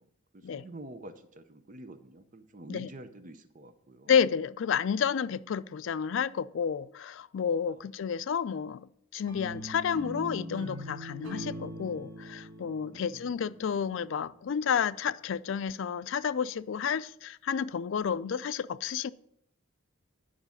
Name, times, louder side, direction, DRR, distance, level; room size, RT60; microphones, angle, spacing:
voice 1, 0.0-4.1 7.7-7.9 12.9-13.4, right 2 dB, 40° right, 0.6 m, -48 dB
voice 2, 4.1-8.9 9.1-19.1, left 7 dB, 65° left, 0.4 m, -30 dB
sound 1, 9.3-14.4, equal, 70° right, 2.4 m, -42 dB
10.5 x 4.9 x 7.1 m
head